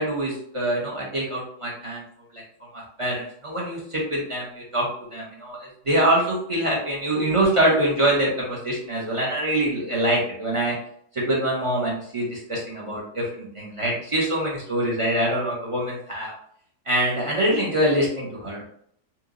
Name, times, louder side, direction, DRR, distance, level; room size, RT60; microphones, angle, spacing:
voice 1, 0.0-2.0 2.3-2.4 2.7-10.7 11.1-16.3 16.9-18.6, right 1 dB, 40° right, -5 dB, 0.4 m, -24 dB
2.8 x 2.1 x 3.6 m, 0.65 s
omnidirectional pair, 1.7 m